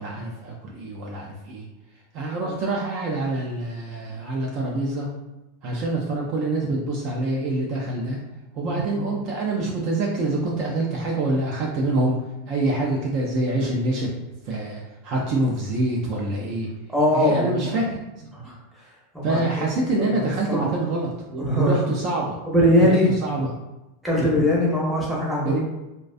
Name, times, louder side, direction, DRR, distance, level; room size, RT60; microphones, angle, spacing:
voice 1, 0.0-1.6 2.1-5.1 5.6-8.2 8.5-12.2 12.5-14.1 14.5-16.7 17.1-18.3 19.2-22.4 22.8-23.0 23.2-23.5 24.2-24.3 25.4-25.6, right 2 dB, 40° right, -2 dB, 0.3 m, -26 dB
voice 2, 8.6-9.1 16.9-17.9 18.3-18.6 19.1-19.7 20.1-20.2 20.5-20.7 21.4-21.7 22.5-23.1 24.0-25.6, left 1 dB, 5° right, -6 dB, 0.6 m, -21 dB
2.5 x 2.1 x 2.4 m, 1.0 s
supercardioid pair, 160°, 0 cm